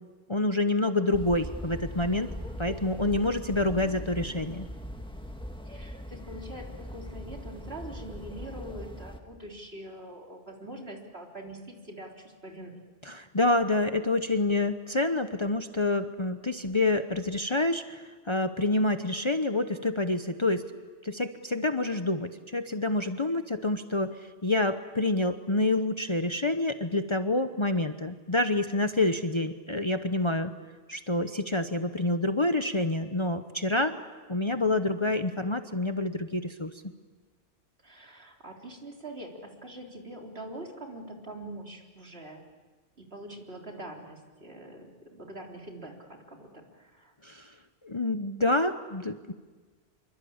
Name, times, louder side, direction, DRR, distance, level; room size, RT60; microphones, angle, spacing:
voice 1, 0.3-2.3 2.6-4.7 13.1-20.6 21.0-24.2 24.4-30.5 30.9-34.0 34.3-36.7 47.2-47.5 47.8-49.3, left 2 dB, 25° left, 8 dB, 0.9 m, -27 dB
sound 1, 1.1-9.2, left 1 dB, 5° left, 1.6 m, -40 dB
voice 2, 5.6-6.7 6.9-12.8 37.8-42.5 43.0-47.1, right 1 dB, 60° right, 1 dB, 4.0 m, -44 dB
27.0 x 24.0 x 8.7 m, 1.4 s
omnidirectional pair, 1.2 m